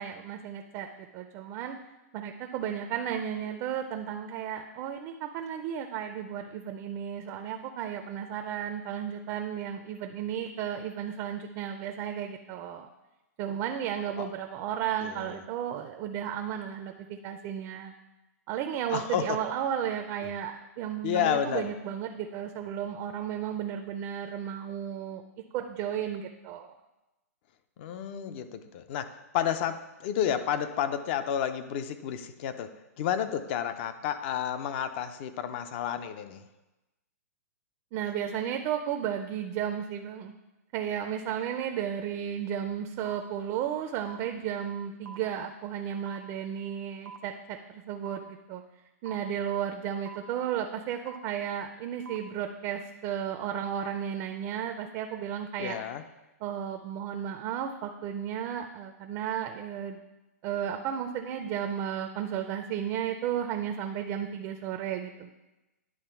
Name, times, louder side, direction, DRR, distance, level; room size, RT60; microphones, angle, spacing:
voice 1, 0.0-1.8 2.1-12.9 13.4-17.9 18.5-25.2 25.5-26.7 37.9-40.3 40.7-48.6 49.0-55.8 56.4-60.0 60.4-65.3, right 9 dB, 30° right, 5 dB, 0.5 m, -34 dB
voice 2, 15.0-15.4 18.9-19.4 21.0-21.7 27.8-32.7 33.0-36.4 55.6-56.0, left 9 dB, 45° left, 10 dB, 0.5 m, -31 dB
sound 1, 43.1-43.2 44.1-44.2 45.1-45.2 46.1-46.2 47.1-47.2 48.1-48.2 49.1-49.2 50.1-50.2 51.1-51.2 52.1-52.2, right 5 dB, 90° right, 0.6 m, -43 dB
10.0 x 3.4 x 4.4 m, 1.0 s
hypercardioid pair, 145°, 9 cm